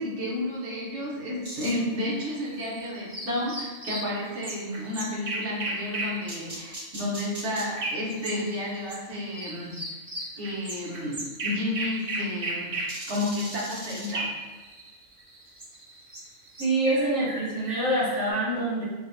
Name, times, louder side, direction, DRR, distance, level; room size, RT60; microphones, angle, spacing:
voice 1, 0.0-9.8 10.4-14.3, left 1 dB, 60° right, -5 dB, 1.3 m, -31 dB
sound 1, 1.4-9.0 9.3-18.3, right 2 dB, 40° right, 0.5 m, -36 dB
voice 2, 16.6-18.8, right 1 dB, 5° left, -9 dB, 0.8 m, -25 dB
5.0 x 2.2 x 2.7 m, 1.3 s
omnidirectional pair, 1.4 m